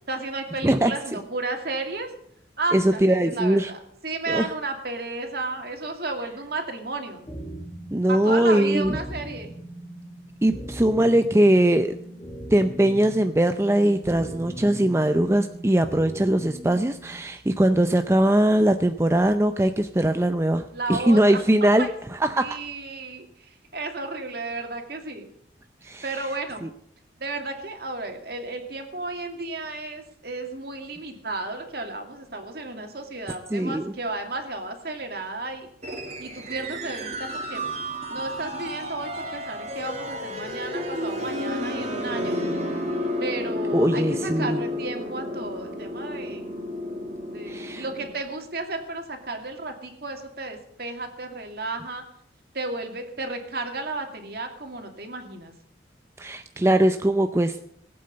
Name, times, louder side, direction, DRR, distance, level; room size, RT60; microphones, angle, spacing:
voice 1, 0.1-2.1 2.6-7.3 8.1-9.5 20.7-21.4 21.8-22.0 22.3-25.3 26.0-26.7 27.2-35.7 36.2-37.6 38.1-42.4 43.2-46.5 47.3-52.0 52.5-55.5, right 3 dB, 55° right, 4 dB, 2.5 m, -33 dB
voice 2, 2.7-3.7 4.3-4.5 7.9-9.0 10.4-12.0 12.5-22.6 25.8-26.3 26.6-26.7 33.5-33.9 43.7-44.6 47.5-47.8 56.2-57.6, right 1 dB, 15° right, 8 dB, 0.5 m, -21 dB
sound 1, 7.3-17.2, equal, 20° left, 1.6 m, -39 dB
sound 2, 35.8-48.1, left 1 dB, 35° right, 2.6 m, -31 dB
19.5 x 8.6 x 6.8 m, 0.67 s
head